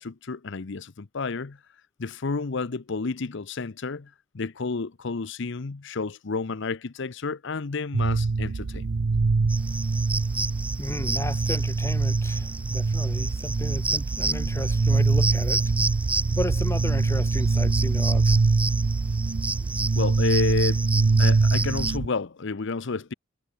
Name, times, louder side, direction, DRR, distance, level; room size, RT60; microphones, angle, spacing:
voice 1, 0.0-1.6 2.0-8.9 20.0-20.9 21.2-23.1, left 4 dB, 60° left, 0.7 m, -30 dB
sound 1, 7.9-22.1, right 3 dB, 60° right, 0.6 m, -24 dB
sound 2, 9.5-22.0, right 2 dB, 5° right, 0.8 m, -32 dB
voice 2, 10.8-15.6 16.4-18.4, left 1 dB, 15° left, 1.4 m, -34 dB
head